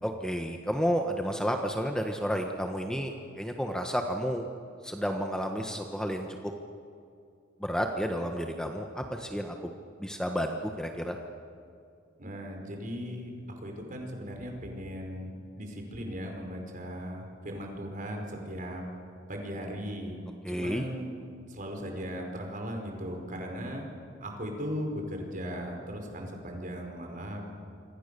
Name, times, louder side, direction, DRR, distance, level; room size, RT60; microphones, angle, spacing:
voice 1, 0.0-4.4 4.8-6.3 7.6-9.7 10.0-11.2 20.4-20.9, equal, 5° left, 4 dB, 1.3 m, -31 dB
voice 2, 12.2-13.3 13.6-18.8 19.3-20.2 20.5-21.1 21.5-23.8 24.2-27.4, equal, 45° right, 2 dB, 5.2 m, -37 dB
28.0 x 25.0 x 6.9 m, 2.5 s
head